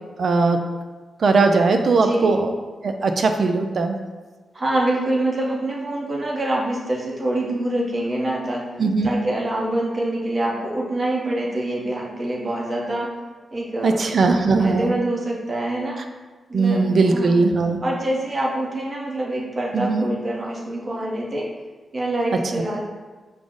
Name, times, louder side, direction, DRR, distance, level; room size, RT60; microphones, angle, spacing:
voice 1, 0.2-0.6 1.2-2.5 2.8-4.0 8.8-9.1 13.8-14.9 16.5-17.8 19.7-20.1, right 3 dB, 60° right, 5 dB, 0.4 m, -19 dB
voice 2, 1.9-2.4 4.5-8.7 9.0-13.2 13.5-14.1 14.6-16.0 16.5-17.3 17.8-21.5 21.9-22.9, right 1 dB, 35° right, -3 dB, 0.8 m, -25 dB
4.9 x 2.0 x 3.7 m, 1.3 s
wide cardioid pair, 115°, 0 cm